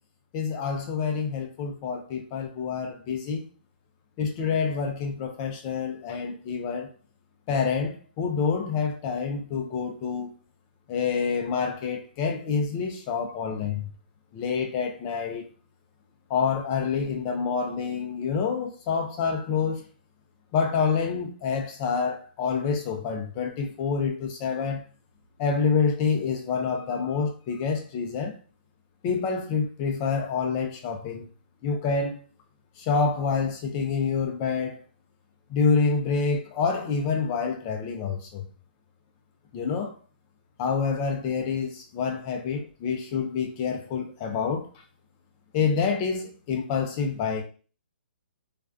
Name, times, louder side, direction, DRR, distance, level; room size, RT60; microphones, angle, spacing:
voice 1, 0.3-3.4 4.2-6.9 7.5-10.3 10.9-13.9 14.3-15.5 16.3-19.8 20.5-24.8 25.4-28.4 29.0-31.3 31.6-32.2 32.8-34.8 35.5-38.4 39.5-39.9 40.6-44.7 45.5-47.4, left 5 dB, 25° left, 0.4 m, -27 dB
2.4 x 2.2 x 2.4 m
hypercardioid pair, 160°, 6 cm